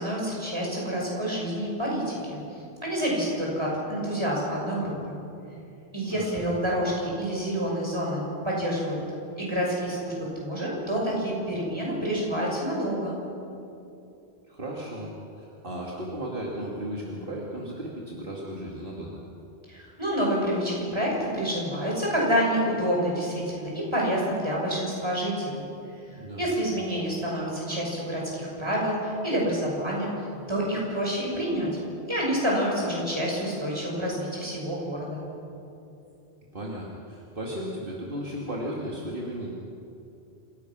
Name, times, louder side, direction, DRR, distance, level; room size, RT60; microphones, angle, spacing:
voice 1, 0.0-2.4 2.8-5.2 5.9-9.0 9.4-13.2 19.7-25.7 26.1-30.1 30.5-31.7 32.1-35.2, equal, 25° right, -3 dB, 6.2 m, -28 dB
voice 2, 14.5-19.2 26.2-26.5 36.5-39.5, equal, 55° right, -3 dB, 2.4 m, -35 dB
27.0 x 17.0 x 6.2 m, 2.8 s
omnidirectional pair, 1.1 m